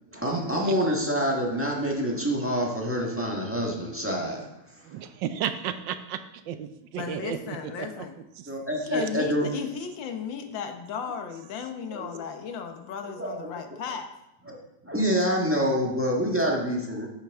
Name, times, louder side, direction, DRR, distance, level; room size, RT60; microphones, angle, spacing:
voice 1, 0.1-5.0 8.5-9.5 11.9-12.1 13.2-13.4 14.5-14.6 14.8-17.1, equal, 10° right, -2 dB, 1.3 m, -27 dB
voice 2, 4.8-8.5 8.8-9.1 11.4-11.5, right 9 dB, 80° right, 11 dB, 1.3 m, -34 dB
voice 3, 6.9-8.1 8.8-14.1, left 6 dB, 85° left, 6 dB, 1.7 m, -35 dB
9.2 x 7.7 x 3.5 m, 0.92 s
omnidirectional pair, 2.0 m